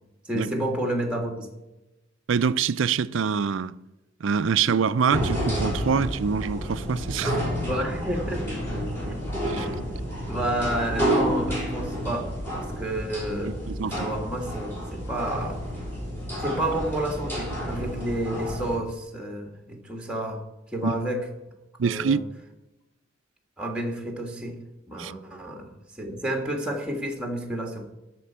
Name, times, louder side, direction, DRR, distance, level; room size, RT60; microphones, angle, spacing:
voice 1, 0.3-1.5 7.6-8.6 10.3-13.6 13.8-15.6 16.4-20.4 20.7-21.2 21.8-22.2 23.6-24.6 24.9-25.7 26.0-27.9, right 1 dB, 5° right, 1.7 m, -30 dB
voice 2, 2.3-3.7 4.2-7.4 9.5-9.7 13.7-14.1 20.8-21.0 21.8-22.2 25.0-25.1, right 6 dB, 70° right, 0.4 m, -25 dB
sound 1, 5.1-18.8, equal, 10° left, 4.0 m, -30 dB
12.5 x 4.5 x 8.5 m
head